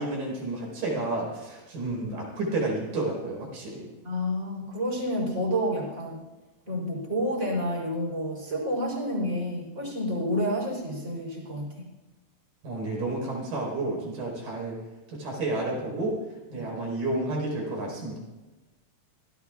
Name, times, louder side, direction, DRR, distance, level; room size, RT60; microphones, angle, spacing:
voice 1, 0.0-3.9 12.6-14.8 15.1-16.2 16.5-18.2, right 2 dB, 70° right, -1 dB, 6.5 m, -31 dB
voice 2, 4.0-6.2 6.7-11.9 16.5-16.7, equal, 20° right, -1 dB, 4.2 m, -29 dB
27.0 x 17.0 x 2.5 m, 1.1 s
omnidirectional pair, 4.1 m